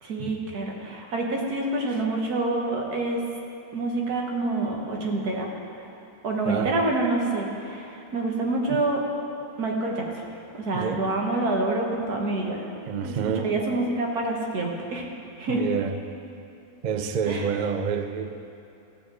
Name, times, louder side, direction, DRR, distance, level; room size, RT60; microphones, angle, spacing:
voice 1, 0.0-3.2 3.7-5.8 6.2-9.0 9.6-10.1 10.6-12.6 13.0-15.1 15.4-15.6 17.3-17.4, right 2 dB, 90° right, 0 dB, 1.9 m, -27 dB
voice 2, 10.7-11.1 12.8-13.5 15.5-16.0 16.8-18.4, right 6 dB, 65° right, 7 dB, 0.4 m, -28 dB
15.0 x 5.3 x 7.7 m, 2.7 s
omnidirectional pair, 1.6 m